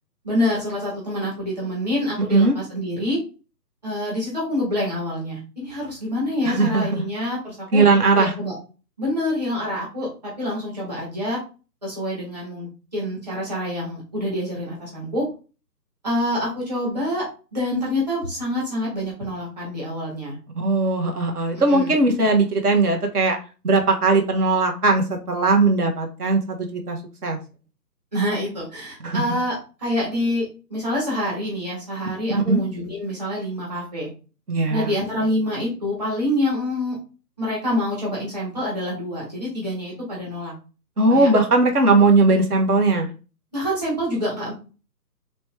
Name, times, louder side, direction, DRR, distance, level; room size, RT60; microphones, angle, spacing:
voice 1, 0.2-3.2 3.8-7.8 8.2-8.5 9.0-11.4 11.8-15.3 16.0-20.3 21.7-21.9 28.1-30.4 30.7-34.1 34.7-37.0 37.4-40.5 41.1-41.3 43.5-44.5, left 1 dB, 25° right, -6 dB, 1.6 m, -26 dB
voice 2, 6.4-7.0 7.7-8.3 20.6-23.4 23.6-27.0 27.2-27.4 29.0-29.2 32.3-32.6 34.5-34.9 41.0-43.1, right 3 dB, 65° right, 3 dB, 1.3 m, -19 dB
3.0 x 3.0 x 3.2 m, 0.33 s
hypercardioid pair, 170°, 49 cm